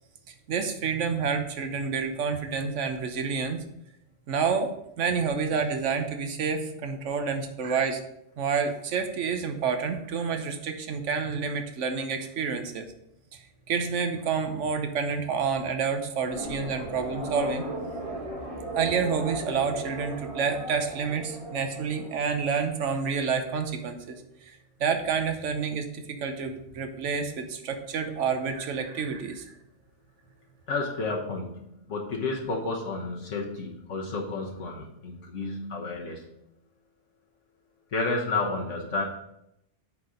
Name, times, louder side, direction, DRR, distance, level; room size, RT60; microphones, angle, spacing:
voice 1, 0.3-3.6 4.3-8.0 8.4-12.8 13.3-17.6 18.8-29.4, right 5 dB, 75° right, 7 dB, 1.2 m, -29 dB
sound 1, 16.3-22.6, right 1 dB, 30° right, 1.3 m, -37 dB
voice 2, 30.7-36.3 37.9-39.0, left 3 dB, 80° left, -1 dB, 1.4 m, -31 dB
8.7 x 4.1 x 5.0 m, 0.79 s
omnidirectional pair, 1.2 m